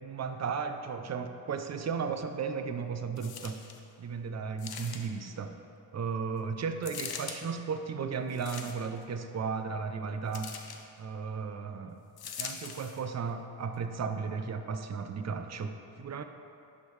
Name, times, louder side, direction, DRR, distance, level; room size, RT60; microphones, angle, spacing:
voice 1, 0.0-3.7 4.0-5.6 5.9-10.6 11.0-12.0 12.4-16.2, right 5 dB, 40° right, 8 dB, 0.5 m, -35 dB
sound 1, 3.2-3.8 4.6-5.3 6.8-7.4 8.3-9.0 10.3-10.8 12.2-13.0 13.7-13.8, left 7 dB, 60° left, 0.6 m, -42 dB
10.5 x 3.6 x 3.1 m, 2.6 s
cardioid pair, 70°, 43 cm